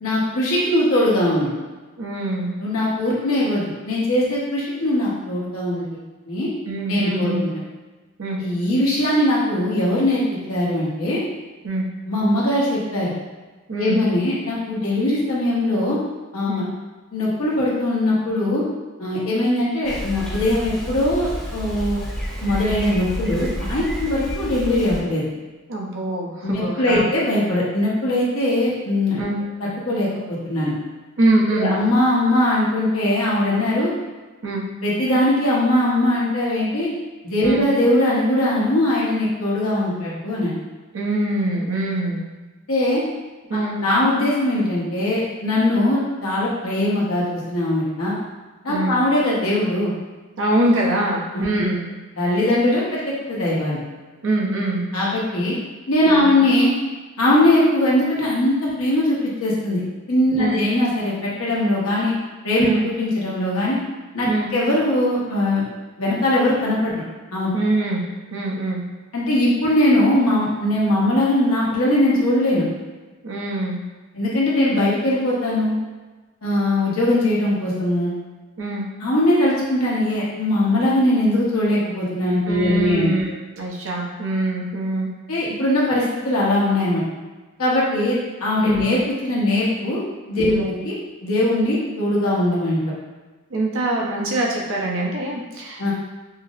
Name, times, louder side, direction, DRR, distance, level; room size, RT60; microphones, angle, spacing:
voice 1, 0.0-1.5 2.6-5.9 6.3-6.5 6.9-7.5 8.4-10.2 10.5-11.2 12.1-13.1 13.8-16.0 16.3-16.6 17.1-18.6 19.0-22.0 22.4-25.2 26.4-29.2 29.9-30.7 31.5-33.9 34.8-36.9 37.2-40.5 42.7-43.0 43.5-48.1 48.6-49.9 51.3-51.7 52.2-52.8 53.3-53.8 54.9-55.5 55.9-56.7 57.2-59.8 60.1-62.1 62.4-63.7 64.1-65.6 66.0-67.0 67.3-67.5 69.1-72.6 74.1-75.8 76.4-78.1 79.0-83.1 85.3-87.0 87.6-88.2 88.4-90.0 90.3-90.9 91.2-92.8 95.8-95.9, left 1 dB, 75° left, -6 dB, 1.0 m, -20 dB
voice 2, 2.0-2.5 6.6-7.4 8.2-8.4 11.6-11.8 13.7-14.0 16.5-16.6 25.7-27.0 29.2-29.4 31.2-31.7 34.4-34.6 37.4-37.6 40.9-42.3 43.5-43.8 48.7-49.0 50.4-51.8 54.2-54.9 56.0-56.3 60.4-60.6 62.6-62.9 64.3-64.5 67.5-68.0 68.3-68.8 73.2-73.8 78.6-78.9 82.5-85.1 88.7-88.8 90.5-90.7 93.5-95.9, right 1 dB, 65° right, -2 dB, 0.7 m, -23 dB
Bicycle, 19.8-25.0, equal, 5° left, 0.8 m, -30 dB
5.6 x 2.0 x 2.4 m, 1.2 s
head